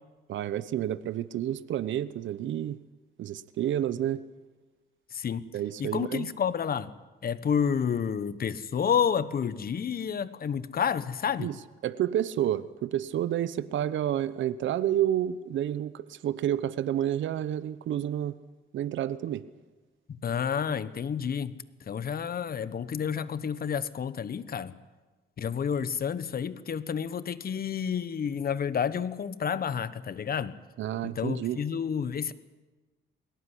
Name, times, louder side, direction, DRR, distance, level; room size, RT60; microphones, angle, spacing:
voice 1, 0.3-2.8 3.2-4.2 5.5-6.3 11.4-11.6 11.8-18.3 18.7-19.4 30.8-31.6, right 11 dB, 70° right, 15 dB, 1.0 m, -30 dB
voice 2, 5.1-5.4 5.8-6.9 7.2-11.5 20.1-21.5 21.8-24.7 25.4-30.5 31.0-32.3, left 7 dB, 50° left, 15 dB, 1.3 m, -30 dB
21.5 x 18.5 x 10.0 m, 1.3 s
cardioid pair, 90°, 20 cm